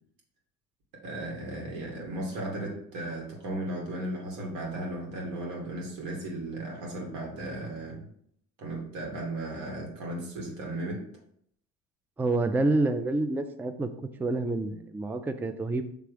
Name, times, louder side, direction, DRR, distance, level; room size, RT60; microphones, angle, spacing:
voice 1, 1.0-8.1 8.6-11.0, right 1 dB, 90° right, -1 dB, 2.5 m, -35 dB
voice 2, 12.2-13.9 14.2-15.8, right 2 dB, 5° right, 9 dB, 0.3 m, -28 dB
6.0 x 3.4 x 5.0 m, 0.68 s
cardioid pair, 125°, 31 cm